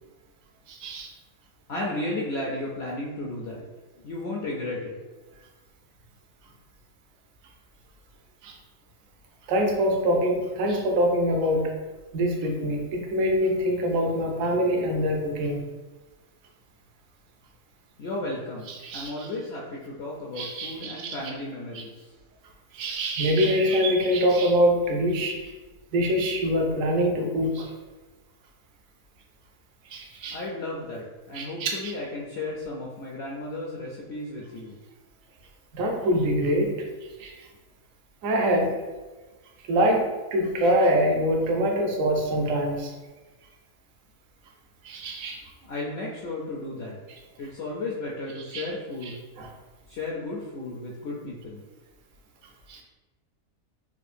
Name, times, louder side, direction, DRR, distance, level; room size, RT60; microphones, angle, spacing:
voice 1, 0.7-1.1 8.4-8.6 9.5-11.7 12.1-15.6 18.7-19.3 20.4-21.2 21.7-21.8 22.7-25.5 25.9-27.7 29.9-30.4 31.3-31.9 35.7-36.8 37.2-37.3 38.2-38.8 39.7-42.9 44.8-45.4 48.5-48.7 49.0-49.5 52.7-52.8, equal, 70° right, 1 dB, 1.0 m, -24 dB
voice 2, 1.7-3.6 4.0-5.0 18.0-22.1 30.3-34.7 45.6-47.0 47.4-49.2 49.9-51.6, left 2 dB, 65° left, -3 dB, 0.6 m, -34 dB
4.3 x 2.4 x 2.5 m, 1.2 s
omnidirectional pair, 1.5 m